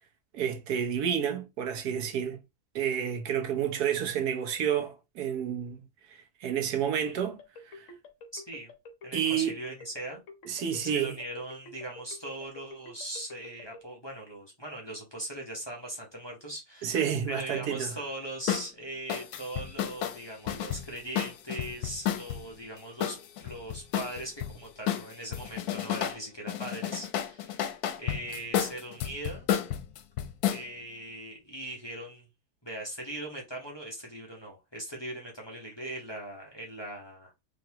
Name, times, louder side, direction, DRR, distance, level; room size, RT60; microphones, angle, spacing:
voice 1, 0.3-2.4 2.7-5.8 6.4-7.4 7.7-7.9 9.1-9.5 10.5-11.1 16.8-17.9, right 8 dB, 80° right, 1.3 m, -29 dB
sound 1, 7.1-13.8, left 2 dB, 60° left, 1.3 m, -48 dB
voice 2, 8.3-8.7 9.0-10.2 10.8-17.0 17.3-29.5 30.5-32.3 32.6-37.3, right 1 dB, 20° left, 0.9 m, -40 dB
sound 2, 18.5-18.7 19.1-22.4 23.0-24.5 24.9-26.2 26.5-30.6, left 10 dB, 85° left, 1.1 m, -31 dB
4.0 x 3.2 x 2.9 m
omnidirectional pair, 1.6 m